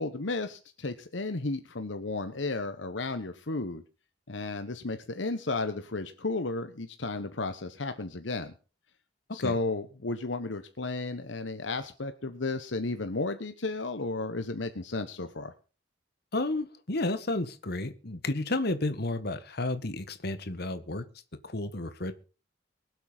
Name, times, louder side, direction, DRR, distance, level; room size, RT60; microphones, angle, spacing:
voice 1, 0.0-3.8 4.3-8.5 9.3-15.5, left 3 dB, 75° left, 9 dB, 1.2 m, -33 dB
voice 2, 16.3-21.0 21.4-22.1, left 2 dB, 55° left, 10 dB, 1.6 m, -32 dB
24.0 x 8.1 x 4.1 m, 0.35 s
head